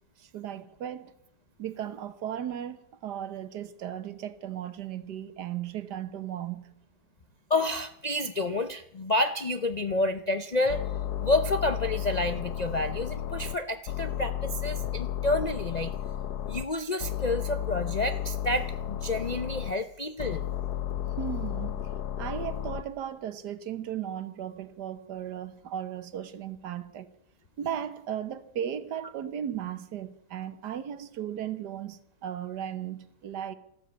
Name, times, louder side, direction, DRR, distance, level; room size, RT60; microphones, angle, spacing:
voice 1, 0.2-1.1 1.6-6.7 21.2-21.9 22.2-27.1 27.6-33.5, right 10 dB, 75° right, 1.6 m, -36 dB
voice 2, 7.5-10.8 11.2-15.9 16.5-20.4, left 2 dB, 50° left, 0.5 m, -29 dB
sound 1, 10.7-13.6 13.9-16.7 17.0-19.7 20.2-22.8, left 10 dB, 70° left, 1.4 m, -33 dB
13.5 x 12.5 x 8.0 m
omnidirectional pair, 1.8 m